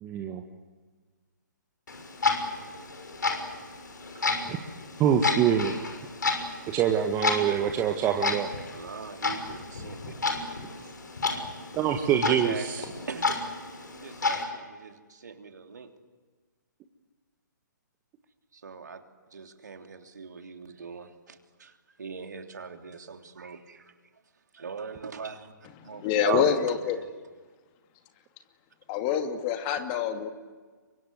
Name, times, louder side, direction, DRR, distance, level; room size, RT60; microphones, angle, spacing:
voice 1, 0.0-0.4 4.5-4.6 5.0-5.8 6.7-8.5 11.8-12.9 26.2-26.5, right 9 dB, 20° right, 4 dB, 1.8 m, -25 dB
Clock, 1.9-14.4, left 4 dB, 70° left, 6.2 m, -32 dB
voice 2, 8.7-10.1 12.2-12.7 13.1-13.4 13.9-15.9 18.6-19.0 19.3-21.7 22.0-23.8 24.5-25.5 25.8-26.6 26.9-27.1, right 5 dB, 65° right, 5 dB, 3.2 m, -41 dB
voice 3, 26.0-27.0 28.9-30.3, left 9 dB, 30° left, 6 dB, 2.5 m, -26 dB
30.0 x 24.0 x 8.1 m, 1.4 s
figure-of-eight pair, 130°, 10 cm